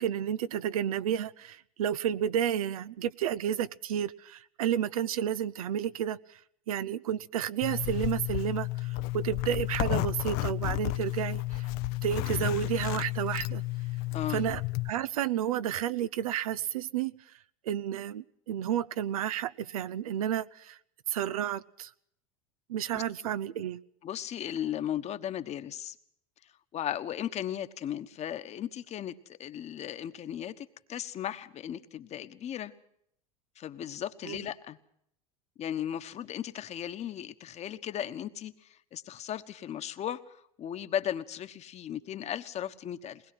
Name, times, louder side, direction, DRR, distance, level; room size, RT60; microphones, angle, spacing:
voice 1, 0.0-6.2 6.7-11.6 12.0-13.6 14.3-17.1 17.7-20.8 21.1-21.9 22.7-23.8 34.2-34.4, right 10 dB, 80° right, 15 dB, 0.7 m, -31 dB
Zipper (clothing), 7.6-14.9, left 18 dB, 55° left, 0.7 m, -32 dB
voice 2, 14.1-14.4 22.9-23.3 24.0-25.9 26.7-32.7 33.6-34.8 35.6-43.2, left 10 dB, 35° left, 10 dB, 1.3 m, -36 dB
21.5 x 20.0 x 6.0 m, 0.70 s
hypercardioid pair, 90°, 18 cm